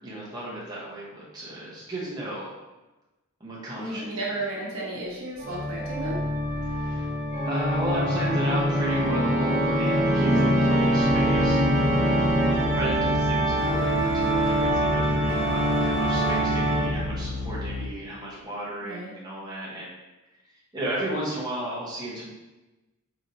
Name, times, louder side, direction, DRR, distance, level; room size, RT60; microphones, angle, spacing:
voice 1, 0.0-2.6 3.4-4.4 6.6-7.1 7.4-12.2 12.7-19.9 20.7-22.3, right 1 dB, 20° right, -7 dB, 0.9 m, -34 dB
voice 2, 3.8-6.2 10.3-10.6 18.8-19.1, right 1 dB, 85° right, -4 dB, 1.1 m, -33 dB
Organ, 5.4-17.2, right 1 dB, 40° right, 1.2 m, -24 dB
sound 1, 11.0-17.9, left 2 dB, 70° left, 0.7 m, -32 dB
4.9 x 2.7 x 2.8 m, 1.1 s
head